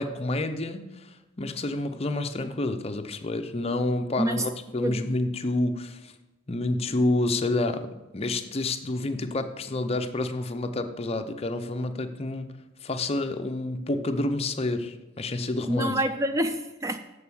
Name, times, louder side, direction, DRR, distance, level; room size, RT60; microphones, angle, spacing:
voice 1, 0.0-6.1 6.5-12.5 12.8-16.0, left 2 dB, 30° left, 0.6 m, -29 dB
voice 2, 15.7-17.0, right 1 dB, 15° right, 0.3 m, -27 dB
6.8 x 6.7 x 7.0 m
head